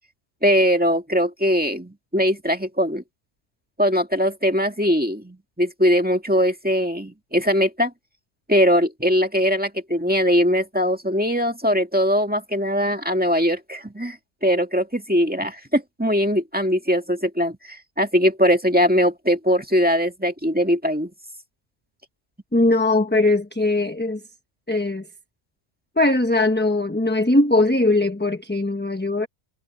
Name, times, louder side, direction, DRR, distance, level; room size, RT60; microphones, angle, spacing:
voice 1, 0.4-3.0 3.8-7.9 8.5-14.2 14.4-21.1, equal, 10° right, 2.0 m, -21 dB
voice 2, 22.5-24.2 24.7-25.1 26.0-29.3, left 2 dB, 10° left, 1.1 m, -20 dB
omnidirectional pair, 1.1 m